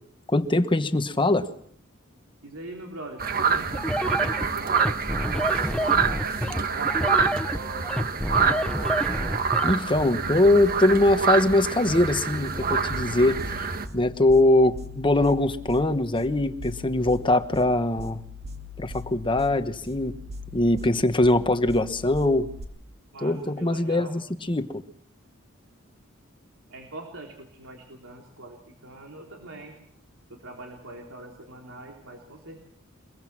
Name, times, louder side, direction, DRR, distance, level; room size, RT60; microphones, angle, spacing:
voice 1, 0.3-1.5 9.6-13.7 13.9-18.2 18.8-20.1 20.5-22.5 23.2-24.2 24.5-24.8, left 2 dB, 25° left, 10 dB, 1.2 m, -22 dB
voice 2, 2.4-9.4 23.1-24.2 26.7-29.7 30.3-32.6, right 2 dB, 75° right, 1 dB, 3.5 m, -42 dB
sound 1, 3.2-13.9, right 6 dB, 45° right, 1.5 m, -26 dB
sound 2, 3.7-9.7, equal, 5° left, 0.9 m, -28 dB
sound 3, 12.4-22.6, left 2 dB, 30° right, 2.2 m, -40 dB
23.5 x 22.5 x 6.1 m, 0.64 s
head